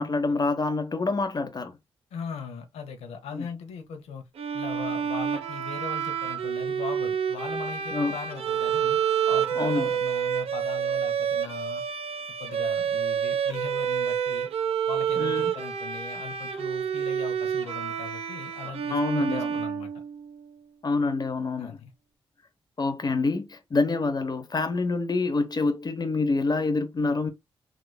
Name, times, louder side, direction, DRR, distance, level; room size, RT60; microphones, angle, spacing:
voice 1, 0.0-1.7 3.3-3.5 7.9-8.1 9.3-9.9 15.2-15.5 18.9-19.6 20.8-21.8 22.8-27.3, left 3 dB, 40° left, 1.0 m, -27 dB
voice 2, 2.1-4.3 4.5-9.0 9.3-11.8 12.4-14.5 14.9-19.9 21.6-21.9, left 6 dB, 85° left, 0.9 m, -39 dB
Bowed string instrument, 4.4-20.4, right 8 dB, 70° right, 0.8 m, -28 dB
3.7 x 3.1 x 2.2 m
supercardioid pair, 45°, 10 cm